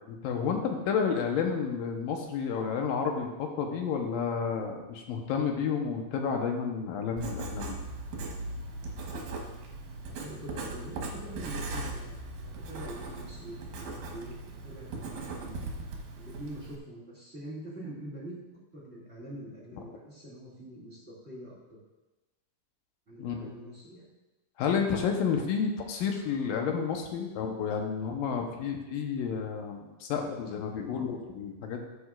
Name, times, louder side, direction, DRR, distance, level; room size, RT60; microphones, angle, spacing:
voice 1, 0.1-7.8 23.2-23.5 24.6-31.8, left 6 dB, 85° left, 3 dB, 2.7 m, -31 dB
Writing, 7.2-16.8, right 2 dB, 75° right, 2.8 m, -39 dB
voice 2, 10.1-14.4 14.6-15.6 16.1-18.4 18.7-21.8 23.1-24.1, right 1 dB, 20° right, -6 dB, 2.2 m, -44 dB
14.5 x 7.8 x 2.5 m, 1.1 s
omnidirectional pair, 4.0 m